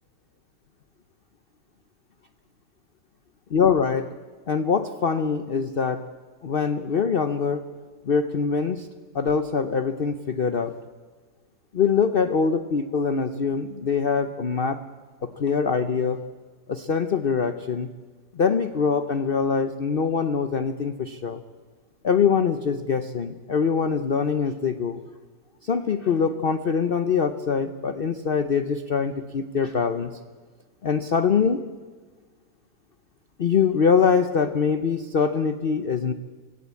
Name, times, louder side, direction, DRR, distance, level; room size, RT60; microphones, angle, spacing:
voice 1, 3.5-4.1 4.5-6.0 6.4-7.6 8.0-8.9 9.1-10.7 11.7-14.8 15.4-16.2 16.7-17.9 18.3-21.4 22.0-25.0 25.6-30.1 30.8-31.6 33.4-36.1, left 6 dB, 55° left, 10 dB, 0.6 m, -23 dB
25.5 x 16.5 x 8.4 m, 1.4 s
omnidirectional pair, 2.0 m